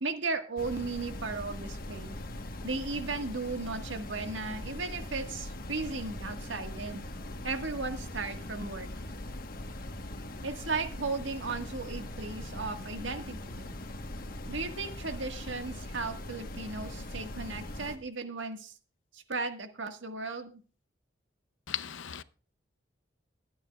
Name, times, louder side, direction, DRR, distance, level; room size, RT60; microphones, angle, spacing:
voice 1, 0.0-2.1 2.6-7.1 7.4-8.9 10.4-13.6 14.5-18.7 19.1-20.5, right 3 dB, 85° right, 1.6 m, -36 dB
sound 1, 0.6-18.0, left 1 dB, 50° left, 1.3 m, -41 dB
voice 2, 21.7-22.2, left 11 dB, 90° left, 0.7 m, -36 dB
22.5 x 9.4 x 2.4 m
head